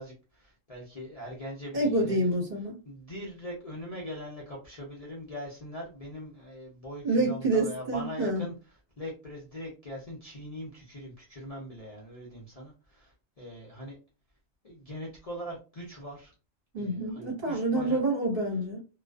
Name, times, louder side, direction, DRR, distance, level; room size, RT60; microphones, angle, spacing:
voice 1, 0.0-2.3 2.9-8.5 9.0-14.0 14.6-16.3 16.8-18.0, equal, 45° left, -3 dB, 0.5 m, -41 dB
voice 2, 1.7-2.8 7.0-8.4 16.7-18.8, right 2 dB, 50° right, -4 dB, 1.2 m, -27 dB
2.4 x 2.3 x 2.3 m, 0.33 s
omnidirectional pair, 1.3 m